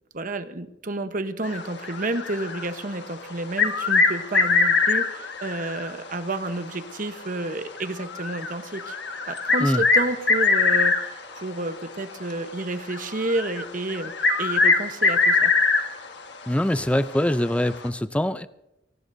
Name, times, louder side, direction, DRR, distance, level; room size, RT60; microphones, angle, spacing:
voice 1, 0.1-9.0 9.3-15.5, right 2 dB, 45° right, 9 dB, 1.0 m, -30 dB
sound 1, 1.4-3.0 3.4-6.1 6.3-6.4 7.1-7.2 7.8-11.4 12.1-12.3 12.9-16.1 16.5-16.6 17.6-17.9, left 4 dB, 65° left, 1.5 m, -22 dB
voice 2, 16.5-18.5, left 1 dB, 5° left, 12 dB, 0.5 m, -23 dB
23.0 x 18.0 x 2.7 m, 0.88 s
head